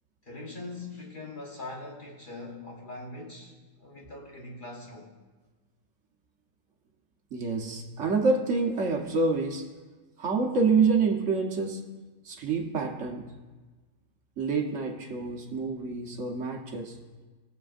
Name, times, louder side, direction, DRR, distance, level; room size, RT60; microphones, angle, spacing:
voice 1, 0.2-5.1, left 2 dB, 40° left, -2 dB, 1.5 m, -42 dB
voice 2, 7.3-9.7 10.2-11.8 12.2-13.4 14.4-17.0, right 4 dB, 60° right, 2 dB, 1.3 m, -27 dB
20.0 x 6.9 x 2.5 m, 1.3 s
omnidirectional pair, 1.4 m